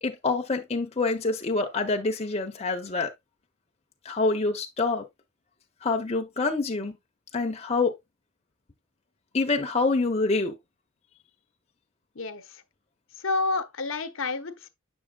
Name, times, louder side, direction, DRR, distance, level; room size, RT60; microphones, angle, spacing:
voice 1, 0.0-3.1 4.0-5.0 5.8-7.0 7.3-7.9 9.3-10.5, left 3 dB, 30° left, 0.7 m, -26 dB
voice 2, 12.1-12.6 13.2-14.7, left 3 dB, 70° left, 0.9 m, -29 dB
7.7 x 6.3 x 2.3 m
head